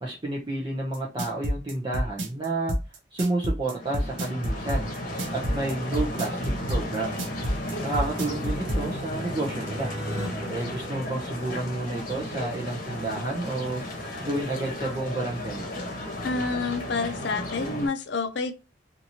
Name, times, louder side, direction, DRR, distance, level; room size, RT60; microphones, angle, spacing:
voice 1, 0.0-2.8 3.1-4.9 5.3-6.4 6.7-7.2 7.8-9.9 10.5-13.8 14.2-15.7, right 2 dB, 25° right, 0.5 m, -30 dB
sound 1, 0.9-8.8, equal, 75° right, 0.7 m, -28 dB
sound 2, 3.6-17.9, left 1 dB, 45° left, 1.0 m, -34 dB
sound 3, 6.4-12.0, equal, 15° left, 0.8 m, -40 dB
voice 2, 16.2-18.5, left 4 dB, 60° left, 0.5 m, -28 dB
2.8 x 2.5 x 2.7 m
head